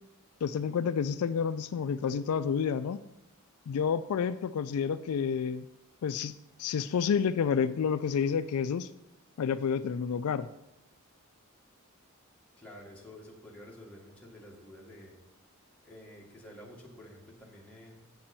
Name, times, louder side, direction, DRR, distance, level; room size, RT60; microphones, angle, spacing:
voice 1, 0.4-3.0 3.7-5.7 6.0-8.9 9.4-10.5, left 7 dB, 75° left, 13 dB, 0.3 m, -29 dB
voice 2, 12.6-15.2 15.8-18.1, left 1 dB, 5° left, -4 dB, 1.8 m, -50 dB
7.8 x 7.5 x 4.3 m, 0.89 s
head